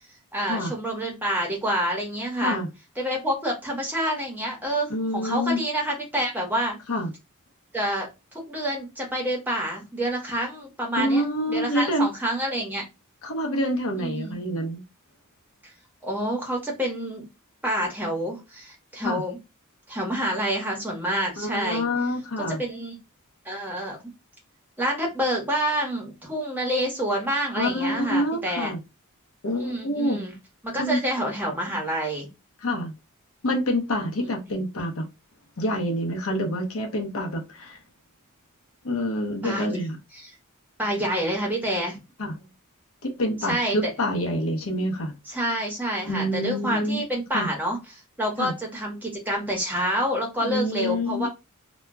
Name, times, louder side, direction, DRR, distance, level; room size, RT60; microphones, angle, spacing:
voice 1, 0.3-2.6 3.0-6.8 7.7-11.2 11.5-12.8 14.0-14.4 16.0-17.3 17.6-19.4 19.9-21.9 22.4-22.9 23.4-24.0 24.8-28.7 29.6-30.3 30.6-32.3 34.2-34.6 39.4-39.8 40.2-40.3 40.8-42.0 43.5-43.9 45.3-47.8 48.2-51.3, equal, 10° right, 0.8 m, -28 dB
voice 2, 4.9-5.6 6.9-7.1 11.0-12.1 13.2-14.8 19.0-19.2 21.4-22.6 27.5-28.8 29.4-30.2 30.8-31.0 32.6-32.9 33.4-35.1 35.6-37.8 38.8-40.0 42.2-42.4 43.0-45.1 46.0-47.0 47.3-47.5 48.4-48.5 50.4-51.3, equal, 65° left, 0.7 m, -27 dB
2.2 x 2.1 x 3.4 m
head